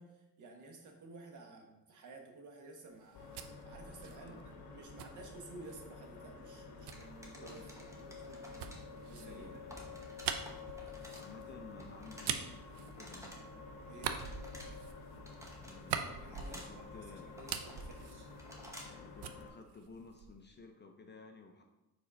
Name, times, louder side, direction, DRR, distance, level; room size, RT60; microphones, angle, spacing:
voice 1, 0.0-3.3 3.6-8.7 9.0-9.6 13.9-14.1 15.9-18.3, right 3 dB, 50° right, 2 dB, 1.2 m, -53 dB
sound 1, 2.9-6.0 6.9-13.5 13.9-17.0 17.3-18.9 19.2-20.5, right 8 dB, 85° right, 0.6 m, -44 dB
sound 2, 3.1-19.5, left 4 dB, 65° left, 1.3 m, -51 dB
sound 3, 6.9-19.1, equal, 5° right, 0.9 m, -55 dB
voice 2, 7.4-7.8 8.5-8.6 9.2-10.1 11.2-13.5 15.6-17.3 18.9-21.6, left 4 dB, 30° left, 4 dB, 0.4 m, -55 dB
4.9 x 4.1 x 5.2 m, 0.97 s
cardioid pair, 155°, 38 cm